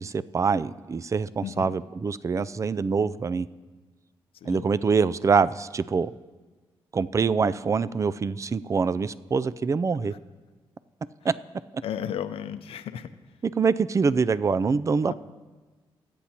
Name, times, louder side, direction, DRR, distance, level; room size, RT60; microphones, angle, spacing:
voice 1, 0.0-3.5 4.4-6.1 6.9-10.1 11.2-11.3 13.6-15.1, right 5 dB, 30° right, 16 dB, 0.4 m, -25 dB
voice 2, 1.4-1.7 4.4-4.7 10.0-10.1 11.8-13.1 15.0-15.1, left 9 dB, 80° left, 12 dB, 0.6 m, -34 dB
19.5 x 8.4 x 2.9 m, 1.3 s
cardioid pair, 65°, 10 cm